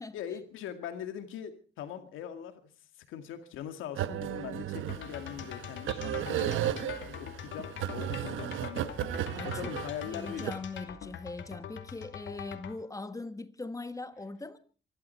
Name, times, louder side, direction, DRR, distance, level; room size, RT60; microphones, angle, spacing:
voice 1, 0.1-10.5, left 9 dB, 90° left, 2.1 m, -42 dB
sound 1, 4.0-10.5, right 12 dB, 85° right, 1.0 m, -35 dB
sound 2, 4.9-12.8, left 9 dB, 70° left, 2.4 m, -43 dB
voice 2, 10.0-14.6, left 3 dB, 15° left, 1.5 m, -40 dB
25.0 x 12.5 x 4.5 m
cardioid pair, 90°, 20 cm